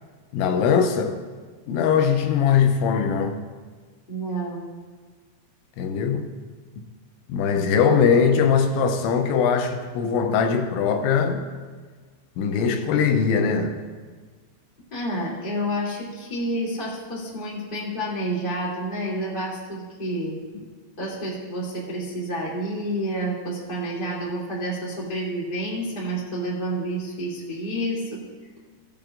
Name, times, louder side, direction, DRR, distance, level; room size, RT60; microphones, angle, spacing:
voice 1, 0.3-1.2 1.7-3.4 5.8-6.3 7.3-11.4 12.4-13.7, left 6 dB, 85° left, 6 dB, 3.0 m, -21 dB
voice 2, 4.1-4.6 14.9-20.4 21.0-28.2, right 1 dB, 20° left, -7 dB, 1.6 m, -29 dB
16.5 x 8.9 x 2.5 m, 1.5 s
omnidirectional pair, 5.3 m